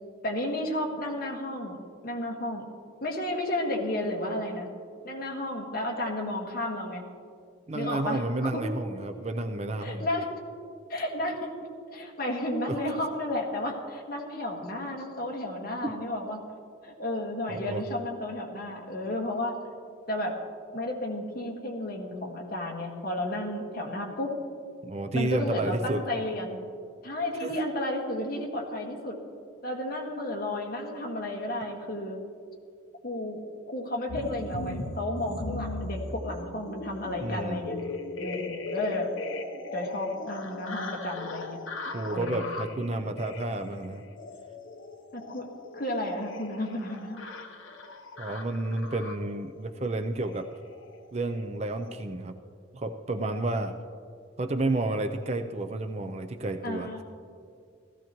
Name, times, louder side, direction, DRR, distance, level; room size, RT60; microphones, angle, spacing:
voice 1, 0.2-1.8 2.0-2.6 3.0-4.7 5.0-7.0 7.7-8.6 9.8-10.3 10.9-11.5 11.9-16.4 16.8-19.6 20.1-20.3 20.7-24.3 25.1-26.6 27.0-29.2 29.6-32.2 33.0-33.4 33.7-37.8 38.2-39.1 39.7-41.6 42.1-42.5 45.1-45.5 45.7-47.2 56.6-57.0, left 1 dB, 45° left, -1 dB, 1.6 m, -32 dB
voice 2, 7.7-10.1 12.7-12.9 15.8-15.9 17.5-17.8 24.8-26.0 27.4-27.5 37.2-37.7 41.9-44.0 48.2-50.5 51.1-52.4 52.7-53.7 54.4-56.9, right 2 dB, 30° right, 7 dB, 0.5 m, -31 dB
sound 1, 34.1-49.5 50.2-50.5 50.7-51.0 51.2-51.4 51.7-51.9, left 2 dB, 75° left, 0.8 m, -39 dB
16.5 x 14.5 x 3.0 m, 2.2 s
head